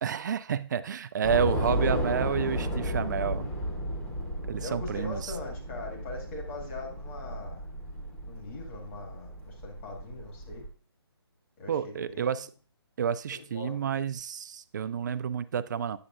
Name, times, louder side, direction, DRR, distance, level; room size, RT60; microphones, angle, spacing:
voice 1, 0.0-3.5 4.5-5.3 11.7-12.5 13.0-16.0, right 8 dB, 45° right, 14 dB, 0.4 m, -30 dB
Train / Subway metro underground, 1.2-10.7, equal, 10° left, 1.0 m, -34 dB
voice 2, 4.6-7.7 8.2-10.6 11.6-12.5 13.3-13.7, left 3 dB, 30° left, 0 dB, 2.0 m, -41 dB
8.8 x 7.0 x 2.5 m, 0.39 s
hypercardioid pair, 150°, 14 cm